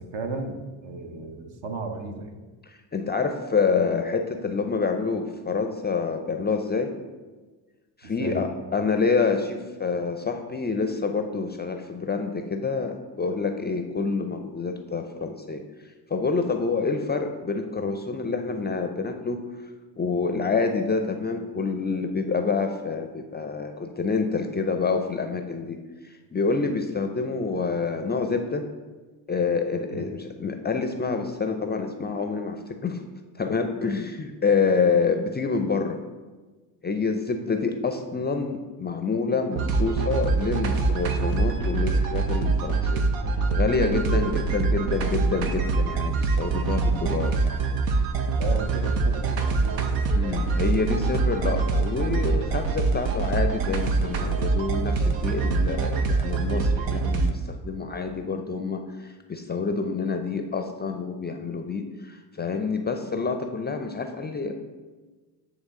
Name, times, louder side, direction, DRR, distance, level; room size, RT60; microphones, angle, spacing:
voice 1, 0.0-2.3 8.0-8.4 29.9-30.0 44.1-45.1 48.3-49.9 51.5-51.6, right 3 dB, 60° right, 5 dB, 1.0 m, -35 dB
voice 2, 2.6-6.9 8.0-19.7 20.0-28.7 29.3-33.0 33.4-36.0 36.8-43.1 43.5-47.6 50.1-64.5, left 4 dB, 20° left, 6 dB, 0.4 m, -27 dB
sound 1, 39.6-57.3, right 4 dB, 85° right, 0.7 m, -24 dB
9.2 x 3.1 x 3.7 m, 1.3 s
hypercardioid pair, 60°, 50 cm